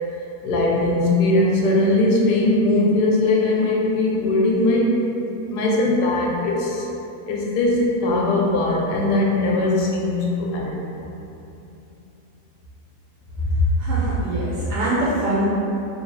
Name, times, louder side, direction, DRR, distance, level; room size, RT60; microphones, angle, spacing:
voice 1, 0.4-5.0 5.5-6.9 7.3-10.8, left 2 dB, 90° left, -2 dB, 1.2 m, -20 dB
voice 2, 13.8-15.4, right 2 dB, 85° right, -8 dB, 1.2 m, -22 dB
2.9 x 2.6 x 3.0 m, 2.9 s
omnidirectional pair, 1.7 m